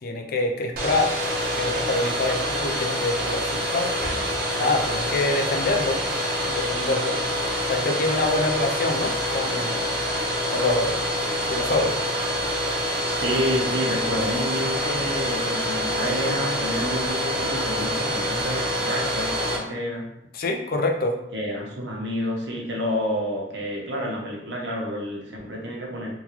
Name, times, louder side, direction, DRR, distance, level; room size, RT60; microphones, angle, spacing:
voice 1, 0.0-1.1 1.5-3.9 4.6-6.0 6.5-7.2 7.7-9.8 10.5-11.0 11.5-12.0 20.3-21.2, left 2 dB, 55° left, 3 dB, 0.5 m, -25 dB
Domestic sounds home sounds, 0.7-19.6, equal, 55° right, 0.7 m, -26 dB
voice 2, 13.0-20.1 21.3-26.1, equal, 85° right, -1 dB, 0.8 m, -29 dB
3.7 x 2.3 x 2.9 m, 0.80 s
head